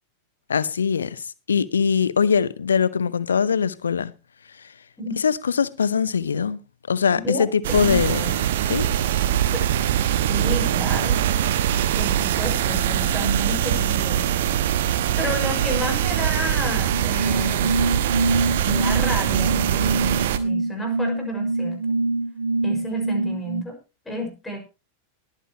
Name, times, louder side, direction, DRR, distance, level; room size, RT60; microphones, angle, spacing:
voice 1, 0.5-4.1 5.2-6.6 6.9-8.3 8.6-8.9, left 6 dB, 70° left, 0.7 m, -22 dB
voice 2, 7.2-8.3 9.5-9.6 10.3-11.6 12.0-14.3 14.5-14.7 15.1-17.8 18.7-21.8 22.6-23.7 24.1-24.6, equal, 10° left, 5.5 m, -31 dB
sound 1, 7.6-20.4, right 10 dB, 55° right, 1.1 m, -22 dB
sound 2, 16.9-23.6, right 2 dB, 80° right, 0.9 m, -25 dB
21.5 x 9.3 x 3.0 m
figure-of-eight pair, 90°, 0 cm